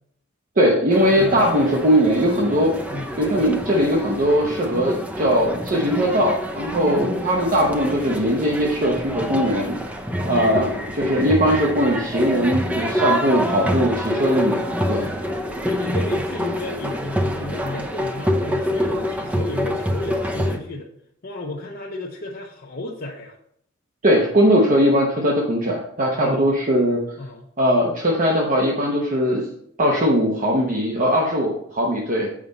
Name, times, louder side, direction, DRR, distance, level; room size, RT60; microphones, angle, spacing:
voice 1, 0.6-2.7 3.2-9.8 10.2-14.6 14.9-15.1 24.0-27.0 27.6-29.5 29.8-32.3, equal, 40° right, -1 dB, 0.9 m, -20 dB
sound 1, 0.9-20.6, equal, 5° right, 0.6 m, -26 dB
voice 2, 15.6-20.9 21.2-23.4 26.1-26.6 27.2-27.5, left 2 dB, 45° left, -2 dB, 0.7 m, -33 dB
7.5 x 5.0 x 4.0 m, 0.71 s
head